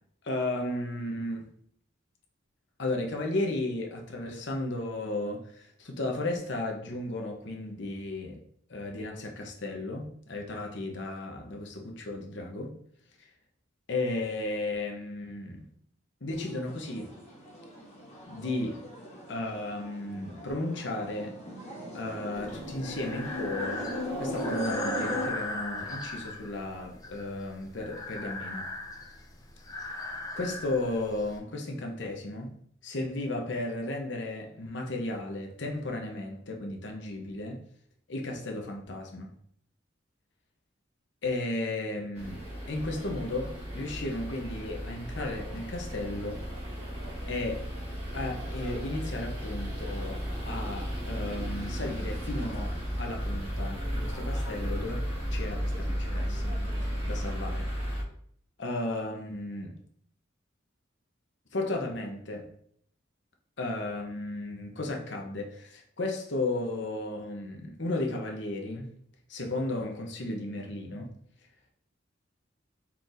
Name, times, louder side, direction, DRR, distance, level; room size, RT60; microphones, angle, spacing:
voice 1, 0.2-1.5 2.8-8.4 8.7-12.7 13.9-15.7 16.2-17.1 18.3-18.8 19.3-21.4 21.9-23.8 24.2-28.7 29.8-29.9 30.3-32.5 32.8-37.6 38.1-39.3 41.2-46.5 47.3-47.7 48.1-55.0 55.3-56.5 56.8-57.7 58.6-59.7 61.5-62.5 63.6-68.9 69.3-71.1, left 2 dB, 65° left, 0.8 m, -34 dB
sound 1, 16.3-25.3, equal, 35° left, 1.2 m, -38 dB
Breathing, 22.4-31.4, left 2 dB, 20° left, 0.5 m, -39 dB
sound 2, 42.2-58.0, equal, 35° right, 1.5 m, -34 dB
4.3 x 4.0 x 2.6 m
head